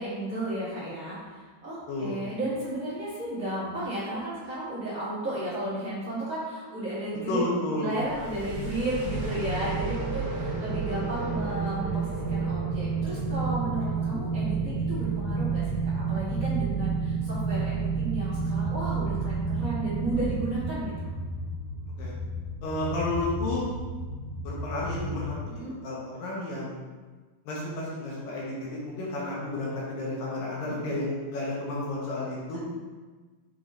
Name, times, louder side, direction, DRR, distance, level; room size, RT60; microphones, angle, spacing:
voice 1, 0.0-7.4 7.7-21.1 25.5-25.7, right 1 dB, 45° right, -11 dB, 1.0 m, -33 dB
voice 2, 1.9-2.2 7.3-7.9 22.0-22.1 22.6-23.6 24.4-25.4 25.8-26.8 27.4-32.6, left 2 dB, 65° left, -5 dB, 2.5 m, -31 dB
sound 1, 8.0-25.3, right 4 dB, 65° right, 1.3 m, -30 dB
7.1 x 3.8 x 3.8 m, 1.4 s
omnidirectional pair, 4.9 m